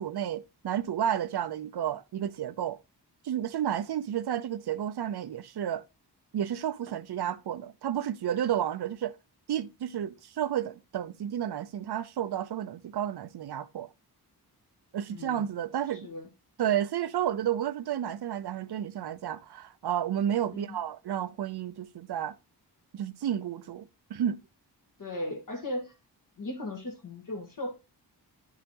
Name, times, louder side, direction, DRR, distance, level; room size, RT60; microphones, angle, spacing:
voice 1, 0.0-2.8 3.2-5.8 6.3-9.2 9.5-13.9 14.9-16.1 16.6-22.4 22.9-24.4, right 10 dB, 70° right, 0.7 m, -31 dB
voice 2, 15.1-15.5 15.9-16.3 20.5-20.8 25.0-25.9 26.4-27.7, left 1 dB, 50° left, 1.6 m, -37 dB
9.9 x 5.5 x 2.9 m
wide cardioid pair, 165°, 40 cm